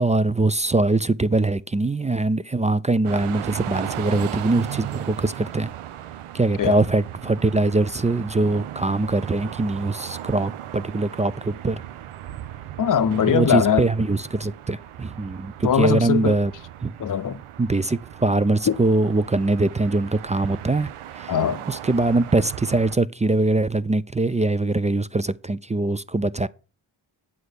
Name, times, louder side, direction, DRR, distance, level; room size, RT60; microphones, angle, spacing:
voice 1, 0.0-5.7 6.3-11.8 13.3-16.5 16.8-16.9 17.6-20.9 21.2-21.3 21.7-26.5, right 2 dB, 15° right, 0.3 m, -22 dB
sound 1, 3.0-23.0, right 12 dB, 90° right, 0.6 m, -37 dB
voice 2, 12.8-13.9 15.6-16.4 17.0-17.4 18.7-18.8 21.3-21.6, left 8 dB, 40° left, 0.7 m, -21 dB
7.9 x 5.6 x 6.5 m
cardioid pair, 50°, 49 cm